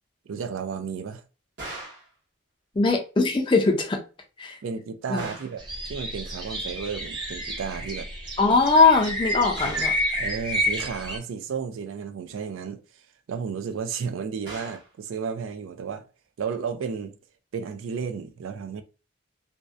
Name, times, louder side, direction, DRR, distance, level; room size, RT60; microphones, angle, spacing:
voice 1, 0.3-1.2 4.6-5.6 5.9-8.1 9.6-9.8 10.1-16.1 16.4-17.2 17.5-18.8, right 6 dB, 85° right, 0.4 m, -33 dB
sound 1, 1.6-2.1 5.2-5.6 9.6-10.0 14.5-14.9, right 2 dB, 55° right, 1.0 m, -39 dB
voice 2, 2.7-4.0 4.4-4.6 5.1-5.3 8.4-9.9, left 4 dB, 25° left, 0.4 m, -20 dB
sound 2, 5.6-11.2, equal, 20° right, 0.6 m, -30 dB
2.6 x 2.1 x 2.3 m
head